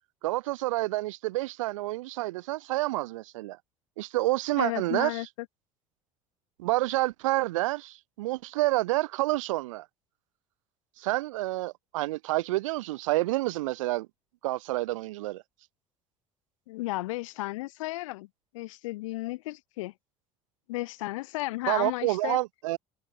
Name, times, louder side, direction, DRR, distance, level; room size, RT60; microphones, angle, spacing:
voice 1, 0.2-3.6 4.0-5.2 6.6-9.9 11.0-14.1 14.4-15.4 21.7-22.8, right 18 dB, 65° right, 2.4 m, -28 dB
voice 2, 4.6-5.3 16.7-18.3 18.5-19.9 20.7-22.4, left 19 dB, 65° left, 2.7 m, -33 dB
figure-of-eight pair, 65°, 18 cm